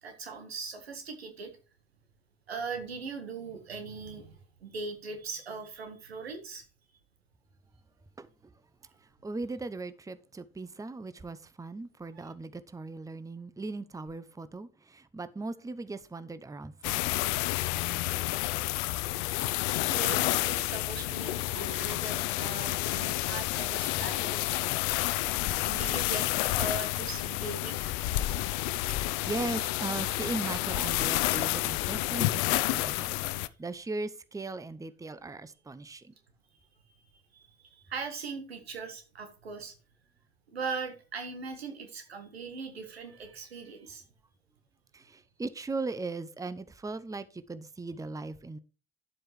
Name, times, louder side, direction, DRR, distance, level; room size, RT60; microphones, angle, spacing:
voice 1, 0.0-1.5 2.5-6.6 12.1-12.3 19.5-24.5 25.6-27.9 37.3-39.7 40.5-44.0, right 4 dB, 90° right, 1.5 m, -40 dB
voice 2, 9.0-17.2 28.9-36.1 44.9-48.6, right 3 dB, 10° right, 0.8 m, -38 dB
sound 1, 16.8-33.5, left 18 dB, 65° left, 0.6 m, -30 dB
11.0 x 7.8 x 3.2 m
hypercardioid pair, 55°, 31 cm